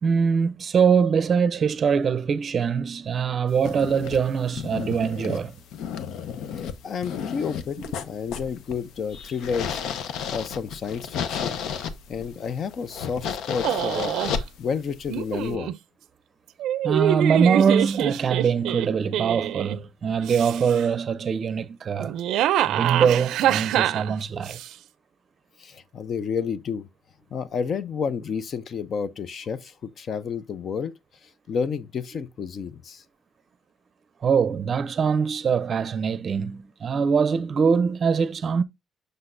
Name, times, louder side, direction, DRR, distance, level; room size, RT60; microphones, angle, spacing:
voice 1, 0.0-5.6 16.8-22.2 22.7-24.6 34.2-38.6, right 6 dB, 35° right, 0.6 m, -23 dB
sound 1, 3.5-15.6, left 7 dB, 75° left, 0.8 m, -33 dB
voice 2, 6.8-9.8 10.3-11.6 12.1-14.1 14.6-15.7 25.6-26.9 27.3-30.9 31.2-33.0, left 6 dB, 45° left, 0.6 m, -30 dB
sound 2, 13.6-14.4 15.1-15.7 16.6-19.8 20.2-20.8 22.0-24.7, right 12 dB, 85° right, 0.5 m, -25 dB
7.8 x 6.6 x 2.6 m
cardioid pair, 160°, 0 cm